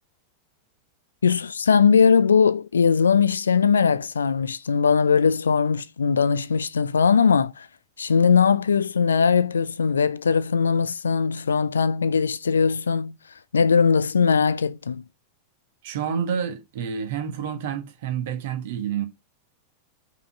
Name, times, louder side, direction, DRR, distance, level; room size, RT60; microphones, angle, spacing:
voice 1, 1.2-7.7 8.0-13.2 13.5-15.0, left 6 dB, 70° left, 0.4 m, -20 dB
voice 2, 15.8-19.1, right 8 dB, 55° right, 1.4 m, -28 dB
5.4 x 4.1 x 5.8 m
figure-of-eight pair, 90°, 0 cm